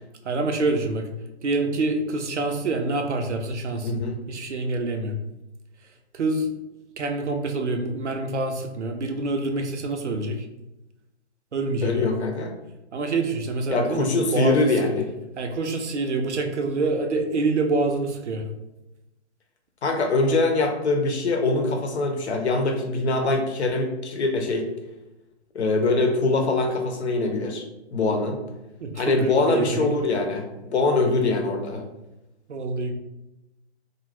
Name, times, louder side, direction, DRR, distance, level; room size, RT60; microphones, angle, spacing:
voice 1, 0.2-1.1 1.4-4.0 4.3-5.1 6.1-6.5 7.0-10.4 11.5-12.1 12.9-14.7 15.4-18.4 28.8-29.9 32.5-32.9, right 3 dB, 90° right, 4 dB, 0.6 m, -26 dB
voice 2, 3.8-4.2 11.8-12.5 13.7-15.1 19.8-24.7 25.5-27.6 27.9-28.4 28.9-31.8, left 3 dB, 75° left, 4 dB, 0.8 m, -23 dB
2.6 x 2.3 x 3.1 m, 0.95 s
hypercardioid pair, 130°, 34 cm